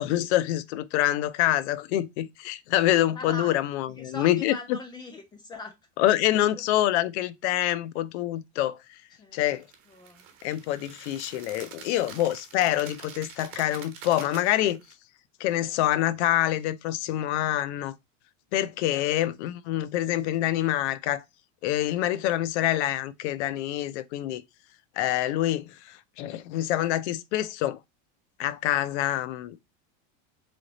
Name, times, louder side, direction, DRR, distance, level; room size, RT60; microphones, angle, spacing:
voice 1, 0.0-4.5 6.0-8.8 9.3-9.6 10.4-14.8 15.4-17.9 18.5-21.2 21.6-24.4 25.0-27.8 28.4-29.6, left 13 dB, 65° left, 0.6 m, -26 dB
voice 2, 3.1-3.5 3.9-5.7 6.0-6.8 9.2-9.6 9.9-10.3, left 3 dB, 10° left, 0.5 m, -41 dB
sound 1, 9.5-14.9, right 7 dB, 35° right, 1.1 m, -46 dB
3.9 x 3.5 x 3.8 m
supercardioid pair, 175°, 37 cm